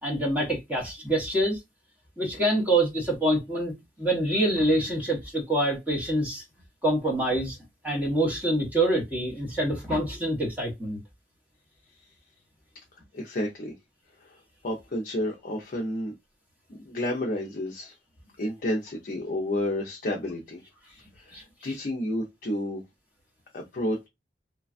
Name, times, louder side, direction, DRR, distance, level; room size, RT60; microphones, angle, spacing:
voice 1, 0.0-1.6 2.2-6.4 6.8-7.6 7.8-11.0 21.3-21.7, right 1 dB, 10° right, 1.1 m, -26 dB
voice 2, 13.1-13.7 14.2-14.4 14.6-16.1 16.7-17.9 18.4-20.6 20.9-22.8 23.5-24.1, left 1 dB, 50° left, 0.5 m, -31 dB
3.2 x 2.3 x 2.4 m
head